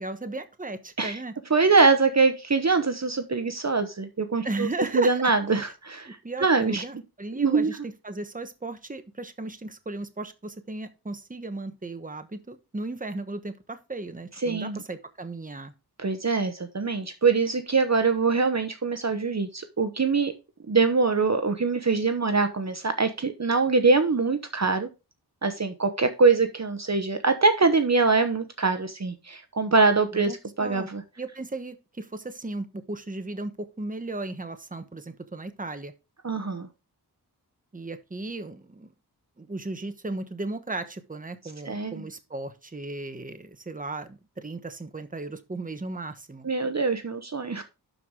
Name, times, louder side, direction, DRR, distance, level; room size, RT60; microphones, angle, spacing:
voice 1, 0.0-1.3 4.4-5.3 6.0-15.7 30.1-30.9 31.2-35.9 37.7-38.9 39.4-46.5, right 2 dB, 20° right, 9 dB, 1.1 m, -36 dB
voice 2, 1.5-6.8 7.4-7.7 14.4-14.8 16.0-20.3 20.7-24.9 25.4-30.3 30.6-31.0 36.2-36.7 41.7-42.0 46.4-47.6, right 4 dB, 45° right, 8 dB, 1.0 m, -23 dB
12.0 x 4.7 x 3.7 m, 0.28 s
wide cardioid pair, 65°, 39 cm